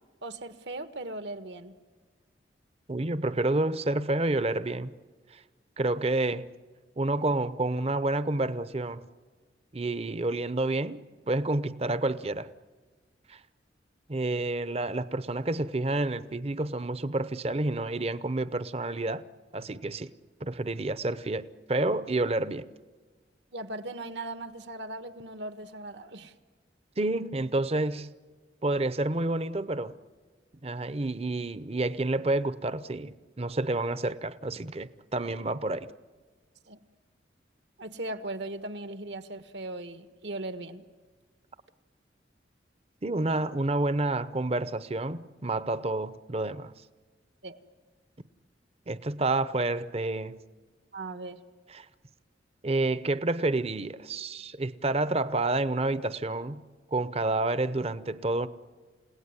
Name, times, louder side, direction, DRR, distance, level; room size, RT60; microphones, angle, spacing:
voice 1, 0.2-1.7 23.5-26.3 36.7-36.8 37.8-40.8 47.4-47.6 50.9-51.4, right 2 dB, 70° right, 10 dB, 1.5 m, -38 dB
voice 2, 2.9-4.9 5.8-6.5 7.0-9.0 9.7-11.0 11.3-12.5 13.3-13.4 14.1-19.2 19.5-20.1 20.4-22.7 27.0-28.1 28.6-29.9 30.6-35.9 43.0-46.7 48.9-50.4 51.7-51.9 52.6-56.6 56.9-58.5, right 2 dB, 35° right, 15 dB, 0.8 m, -29 dB
29.5 x 17.5 x 9.7 m, 1.4 s
head